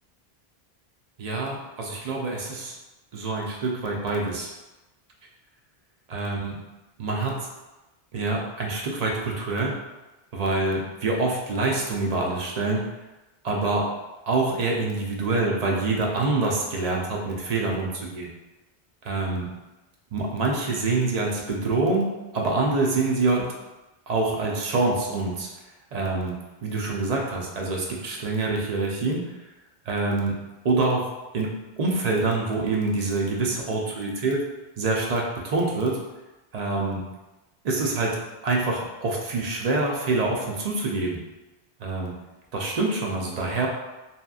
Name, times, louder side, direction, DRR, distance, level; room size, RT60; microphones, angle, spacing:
voice 1, 1.2-2.7 3.1-4.5 6.1-6.6 7.0-7.5 8.1-9.8 10.3-12.9 13.4-13.9 14.3-18.3 19.0-19.5 20.1-23.5 24.1-25.5 25.9-29.4 29.9-30.4 30.6-34.4 34.8-36.0 36.5-37.0 37.6-41.2 41.8-42.2 42.5-43.7, right 3 dB, 55° right, -2 dB, 0.5 m, -26 dB
2.8 x 2.4 x 2.3 m, 1.1 s
omnidirectional pair, 1.0 m